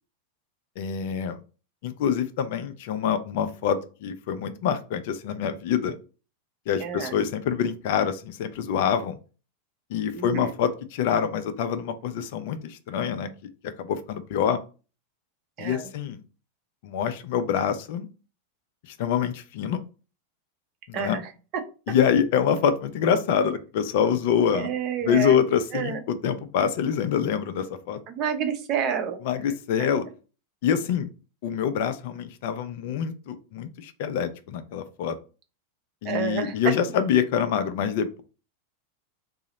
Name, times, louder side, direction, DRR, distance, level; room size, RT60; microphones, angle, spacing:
voice 1, 0.8-1.4 1.8-5.9 6.7-9.2 9.9-13.3 13.6-14.6 15.6-16.2 16.8-18.1 19.0-19.8 20.9-21.2 21.9-24.7 25.0-28.0 29.3-30.0 30.6-31.1 31.4-35.2 36.0-38.2, left 8 dB, 50° left, 10 dB, 0.3 m, -25 dB
voice 2, 6.8-7.1 10.1-10.5 15.6-15.9 20.9-21.6 21.9-22.0 24.5-25.4 25.7-26.0 28.1-29.2 29.8-29.9 36.0-36.7, right 7 dB, 35° right, 7 dB, 0.5 m, -29 dB
2.7 x 2.0 x 3.9 m, 0.35 s
figure-of-eight pair, 90°, 0 cm